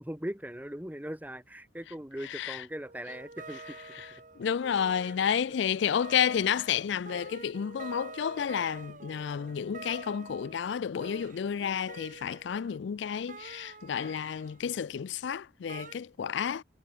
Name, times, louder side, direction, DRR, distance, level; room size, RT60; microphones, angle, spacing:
voice 1, 0.0-3.8 5.0-5.1, equal, 10° right, 1.2 m, -40 dB
voice 2, 2.3-2.6 4.4-16.6, left 8 dB, 65° left, 0.4 m, -31 dB
sound 1, 2.8-12.8 13.3-14.7 15.7-15.9, right 3 dB, 40° right, 2.2 m, -48 dB
head